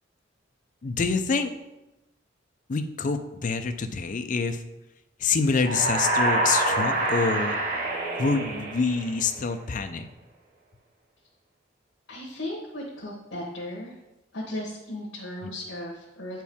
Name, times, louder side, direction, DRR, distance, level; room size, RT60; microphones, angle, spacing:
voice 1, 0.8-1.5 2.7-4.6 5.2-7.6 8.2-10.1, left 4 dB, 45° left, 7 dB, 0.5 m, -26 dB
sound 1, 5.5-9.4, right 2 dB, 50° right, 1.2 m, -26 dB
voice 2, 12.1-14.0 14.3-16.4, left 1 dB, 80° left, -4 dB, 1.1 m, -36 dB
8.3 x 4.4 x 3.5 m, 0.98 s
head